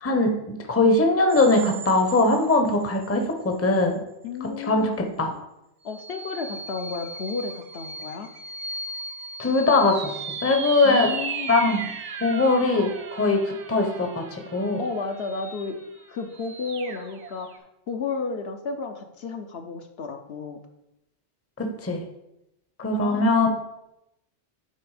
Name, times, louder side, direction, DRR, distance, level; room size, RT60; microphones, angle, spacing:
voice 1, 0.0-4.0 4.4-5.3 9.4-11.1 11.5-11.9 12.2-14.8 21.6-22.0 22.8-23.5, left 2 dB, 15° left, 4 dB, 0.6 m, -21 dB
sound 1, 1.3-3.3 3.7-3.8 5.9-17.6, right 5 dB, 75° right, 1.0 m, -37 dB
voice 2, 4.2-4.9 5.8-8.3 10.8-11.5 14.8-15.8 16.1-17.5 17.9-20.6 23.0-23.3, left 4 dB, 65° left, 5 dB, 0.9 m, -32 dB
8.8 x 3.4 x 4.8 m, 0.87 s
omnidirectional pair, 1.2 m